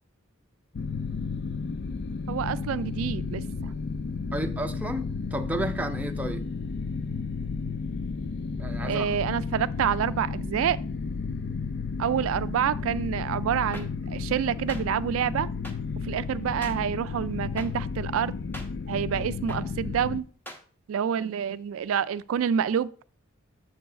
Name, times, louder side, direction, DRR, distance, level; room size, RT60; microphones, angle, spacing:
sound 1, 0.7-20.2, left 4 dB, 55° left, 0.4 m, -33 dB
voice 1, 2.3-3.7 8.8-10.8 12.0-15.5 16.0-18.3 18.9-20.3 20.9-22.9, right 8 dB, 80° right, 0.3 m, -28 dB
voice 2, 4.3-6.4 8.6-9.1, right 1 dB, 5° right, 0.5 m, -32 dB
sound 2, 13.7-13.8 14.7-14.8 15.6-15.7 16.6-16.7 17.6-17.7 18.5-18.7 19.5-19.6 20.5-20.6, equal, 10° left, 0.9 m, -40 dB
6.8 x 4.7 x 4.9 m
head